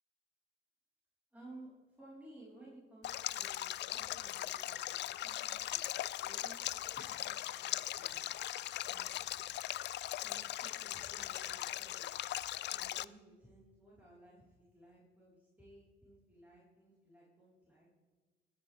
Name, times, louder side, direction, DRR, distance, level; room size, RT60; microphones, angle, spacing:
voice 1, 1.3-5.8 6.1-8.5 8.8-9.3 10.2-17.9, right 1 dB, 10° right, -8 dB, 4.5 m, -58 dB
Stream, 3.0-13.0, left 13 dB, 65° left, 0.4 m, -39 dB
19.5 x 9.7 x 3.6 m, 1.3 s
cardioid pair, 90°, 20 cm